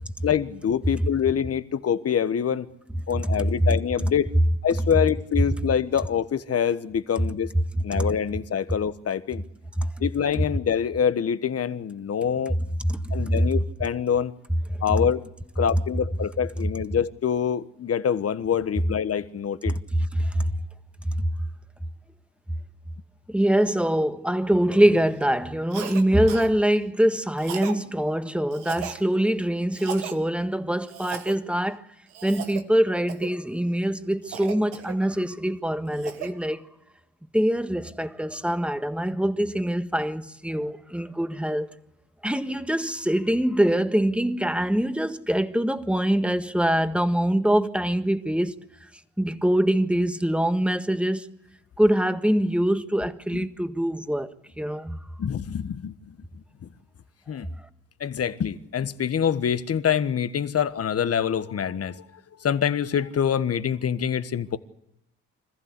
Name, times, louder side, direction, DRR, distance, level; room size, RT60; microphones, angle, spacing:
voice 1, 0.2-2.7 3.1-4.3 4.6-7.5 7.8-9.4 10.0-12.5 13.1-14.3 14.8-15.2 15.6-19.8 53.3-53.5 55.2-55.9 57.3-57.5 58.0-62.0 62.4-64.6, left 8 dB, 50° left, 1.3 m, -25 dB
voice 2, 12.8-13.3 19.7-19.8 20.1-20.4 23.3-31.8 32.2-36.6 37.3-41.7 42.2-48.6 49.2-51.2 51.8-55.0, right 1 dB, 5° right, 1.6 m, -24 dB
Cough, 25.7-26.0 26.3-26.5 27.4-27.8 28.5-29.0 29.7-30.2 30.9-31.4 32.1-32.6 33.1-33.4 34.3-35.3 35.7-36.3, right 9 dB, 90° right, 1.5 m, -36 dB
25.5 x 15.0 x 8.3 m
supercardioid pair, 55°, 31 cm